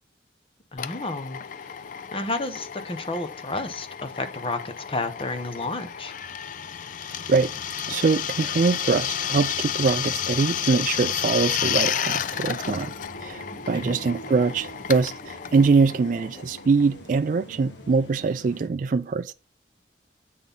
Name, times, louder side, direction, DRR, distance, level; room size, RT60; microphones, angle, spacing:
voice 1, 0.7-1.7 2.1-6.1 13.7-14.0, left 2 dB, 30° left, 0.9 m, -31 dB
Drill, 0.8-17.1, left 9 dB, 45° left, 0.4 m, -31 dB
sound 1, 1.4-18.7, right 1 dB, 80° left, 1.7 m, -46 dB
voice 2, 7.9-12.9 13.2-19.3, right 4 dB, 45° right, 0.3 m, -23 dB
8.5 x 3.9 x 5.3 m
head